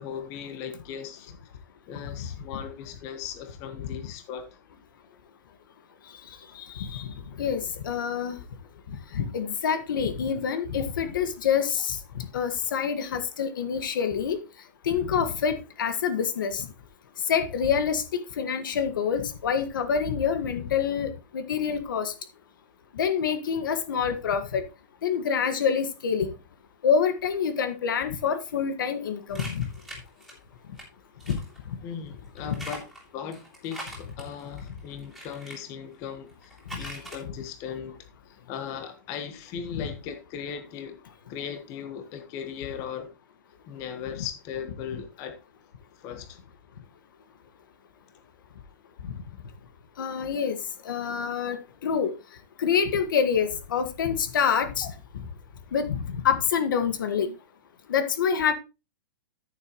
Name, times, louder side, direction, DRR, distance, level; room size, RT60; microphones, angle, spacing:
voice 1, 0.0-1.3 1.9-4.5 31.8-32.8 33.1-38.0 38.3-41.0 41.3-43.1 43.7-45.4 45.9-46.4 54.8-54.9 57.2-57.3, left 7 dB, 30° left, 1.2 m, -38 dB
voice 2, 6.6-7.1 7.4-8.4 9.1-12.0 12.3-14.4 14.8-16.7 17.3-18.0 18.4-22.1 22.9-24.6 25.0-26.3 26.8-29.7 31.3-31.4 32.5-32.6 36.8-36.9 39.7-39.8 50.0-50.6 50.9-51.6 51.8-52.1 52.6-54.9 55.7-57.3 57.9-58.5, left 7 dB, 85° left, 1.7 m, -26 dB
sound 1, 29.3-30.8 31.2-31.6 32.4-35.6 36.3-37.2, right 1 dB, ahead, 3.2 m, -42 dB
13.5 x 6.9 x 3.1 m
supercardioid pair, 165°, 11 cm